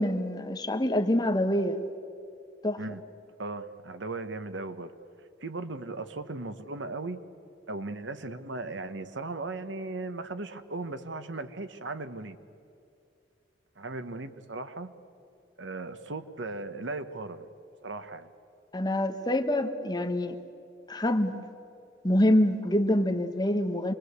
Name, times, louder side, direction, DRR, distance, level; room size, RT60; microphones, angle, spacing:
voice 1, 0.0-1.8 2.6-2.8 18.7-20.4 20.9-21.3 22.0-23.9, left 1 dB, 20° left, 6 dB, 1.2 m, -26 dB
voice 2, 3.4-4.9 5.4-7.2 7.7-12.4 13.8-14.9 15.6-17.5 17.8-18.3, right 3 dB, 75° right, 10 dB, 1.1 m, -37 dB
26.5 x 21.5 x 8.1 m, 2.6 s
head